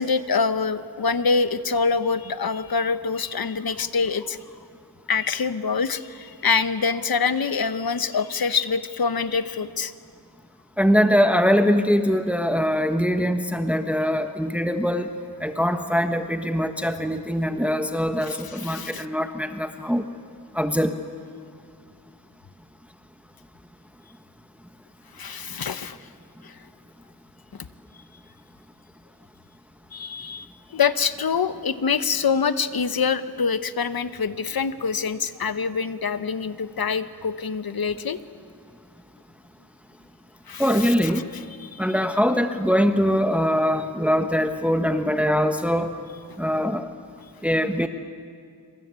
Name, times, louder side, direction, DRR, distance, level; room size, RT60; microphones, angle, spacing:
voice 1, 0.0-4.4 5.1-9.9 18.3-19.0 25.1-26.0 26.4-26.6 27.6-27.7 29.9-30.5 30.7-38.2 40.5-40.9 41.3-41.8, left 5 dB, 70° left, 12 dB, 1.1 m, -25 dB
voice 2, 10.8-15.1 15.4-20.1 20.5-20.9 40.6-41.2 41.8-45.9 46.4-46.9 47.4-47.9, equal, 5° right, 7 dB, 1.2 m, -22 dB
27.0 x 26.0 x 8.3 m, 2.2 s
wide cardioid pair, 100°, 37 cm